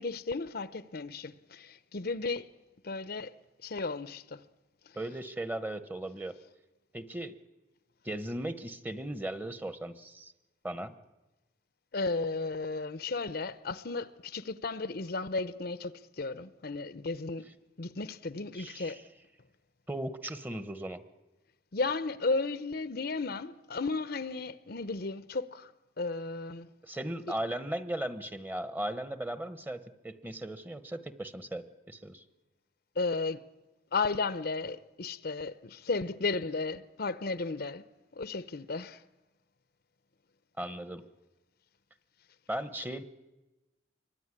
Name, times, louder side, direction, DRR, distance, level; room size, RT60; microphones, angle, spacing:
voice 1, 0.0-2.5 2.8-3.3 3.6-4.4 11.9-17.4 17.8-19.0 21.7-25.7 26.0-26.7 27.3-27.4 33.0-33.4 33.9-37.8 38.2-39.0, left 3 dB, 60° left, 0.8 m, -34 dB
voice 2, 5.0-6.3 6.9-7.4 8.0-10.3 10.6-10.9 18.5-19.0 19.9-21.0 26.8-32.2 40.6-41.0 42.5-43.0, right 1 dB, 10° right, 1.1 m, -37 dB
25.5 x 23.0 x 9.8 m
head